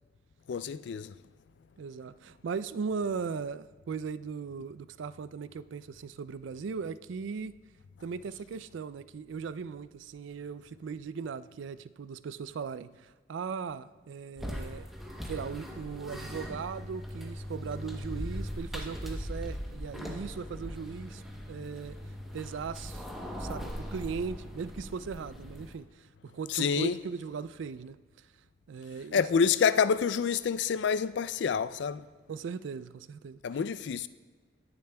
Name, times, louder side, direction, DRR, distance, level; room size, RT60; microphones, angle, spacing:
voice 1, 0.5-1.1 26.5-27.0 29.1-32.1 33.4-34.1, left 6 dB, 75° left, 0.3 m, -27 dB
voice 2, 1.8-7.5 8.0-14.9 15.3-21.2 21.5-22.0 22.3-23.0 23.4-28.0 28.7-29.2 32.3-33.4, right 5 dB, 90° right, 0.4 m, -38 dB
sound 1, 14.4-25.8, equal, ahead, 0.8 m, -40 dB
18.0 x 7.0 x 2.2 m
head